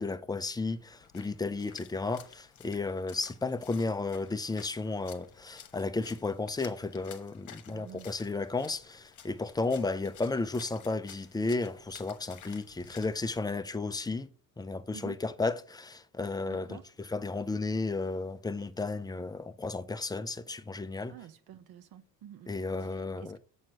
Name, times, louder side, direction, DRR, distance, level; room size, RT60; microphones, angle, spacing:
voice 1, 0.0-14.3 14.6-21.1 22.5-23.4, left 3 dB, 10° left, 0.5 m, -33 dB
Splash splatter, 0.7-13.4, left 9 dB, 45° left, 1.1 m, -54 dB
voice 2, 7.7-8.1 14.9-15.2 16.5-16.8 21.1-22.5 22.8-23.4, right 10 dB, 60° right, 1.0 m, -49 dB
7.3 x 4.4 x 6.3 m
cardioid pair, 110°, 41 cm